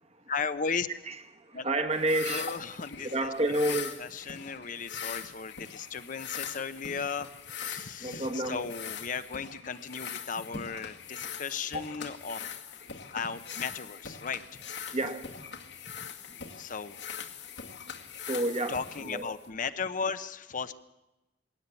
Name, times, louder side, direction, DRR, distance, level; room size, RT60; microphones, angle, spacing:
voice 1, 0.3-0.9 1.5-1.7 2.3-3.6 4.0-12.4 13.1-14.4 14.8-15.0 16.6-17.0 18.7-20.8, left 5 dB, 45° left, 11 dB, 0.8 m, -36 dB
voice 2, 1.1-2.5 3.1-4.0 8.0-8.6 11.7-11.8 14.9-15.3 18.3-19.3, right 1 dB, 35° right, 8 dB, 1.4 m, -30 dB
sound 1, 1.9-19.5, left 7 dB, 80° left, 2.1 m, -42 dB
20.5 x 17.5 x 8.4 m, 1.0 s
head